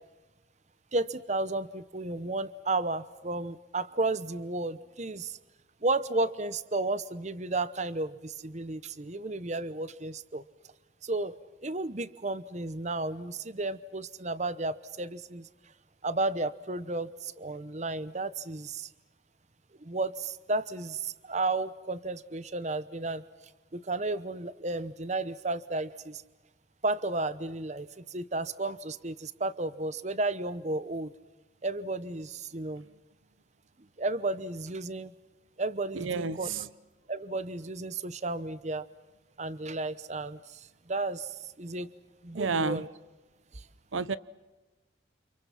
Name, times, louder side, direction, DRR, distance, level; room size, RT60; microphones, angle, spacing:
voice 1, 0.9-5.4 5.8-10.4 11.0-11.4 11.6-15.5 16.0-18.9 19.8-23.2 23.7-26.2 26.8-31.1 31.6-32.9 34.0-35.1 35.6-36.5 37.1-38.9 39.4-41.9 42.2-42.9 43.5-43.6, right 2 dB, 35° right, 15 dB, 0.9 m, -33 dB
voice 2, 36.0-36.7 42.3-42.8 43.9-44.2, right 4 dB, 90° right, 16 dB, 0.8 m, -30 dB
30.0 x 27.5 x 5.8 m, 1.1 s
head